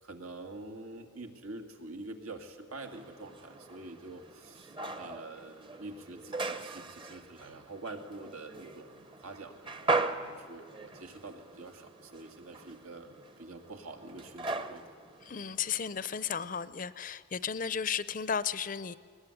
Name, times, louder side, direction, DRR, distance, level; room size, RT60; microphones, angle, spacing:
voice 1, 0.0-14.9, right 2 dB, 90° right, 4 dB, 2.5 m, -46 dB
sound 1, 2.8-16.6, right 3 dB, 25° right, 0.8 m, -39 dB
voice 2, 15.3-19.0, left 7 dB, 40° left, 16 dB, 0.5 m, -34 dB
21.0 x 20.5 x 10.0 m, 2.1 s
head